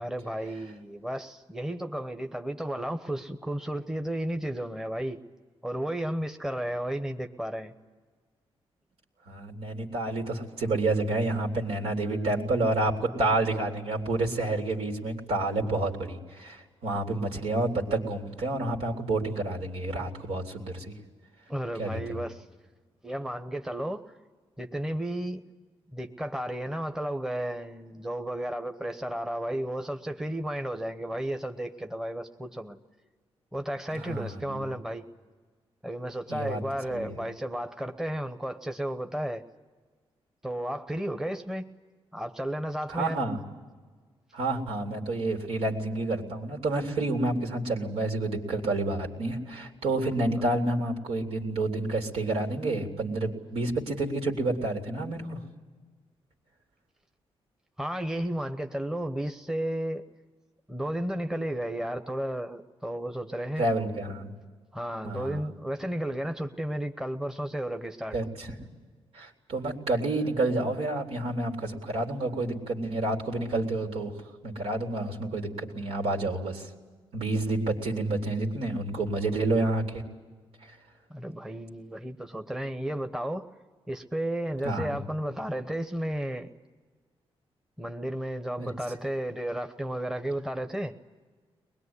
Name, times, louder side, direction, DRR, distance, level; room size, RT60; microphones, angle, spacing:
voice 1, 0.0-5.2 5.6-7.7 21.5-22.4 23.0-24.0 24.6-25.4 25.9-32.8 33.5-35.1 35.8-39.4 40.4-41.7 42.1-43.2 57.8-60.0 60.7-63.7 64.7-68.1 81.1-83.5 83.9-86.5 87.8-90.9, right 1 dB, 5° right, 6 dB, 1.0 m, -33 dB
voice 2, 9.3-20.9 21.8-22.2 34.1-34.7 36.3-36.6 36.9-37.2 42.9-43.4 44.3-55.4 63.6-64.3 65.0-65.4 68.1-68.6 69.1-74.1 74.4-76.7 77.1-80.0 84.6-85.0 88.6-88.7, right 2 dB, 80° right, 1 dB, 3.5 m, -29 dB
23.0 x 21.0 x 9.8 m, 1.4 s
cardioid pair, 120°, 10 cm